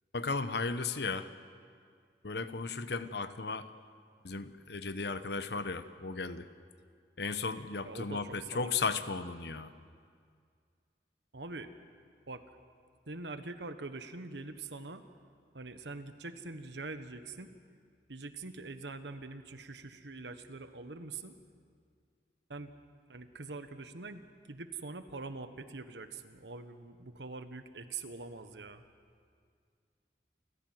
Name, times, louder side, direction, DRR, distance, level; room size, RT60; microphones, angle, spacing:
voice 1, 0.1-1.3 2.2-3.7 4.2-6.5 7.2-9.7, left 4 dB, 70° left, 11 dB, 1.0 m, -35 dB
voice 2, 7.8-9.0 11.3-11.7 12.3-12.4 13.1-15.0 15.5-17.5 18.1-21.4 22.5-22.7 23.1-24.2 24.5-28.8, right 3 dB, 80° right, 9 dB, 1.3 m, -44 dB
29.0 x 15.0 x 7.8 m, 2.1 s
head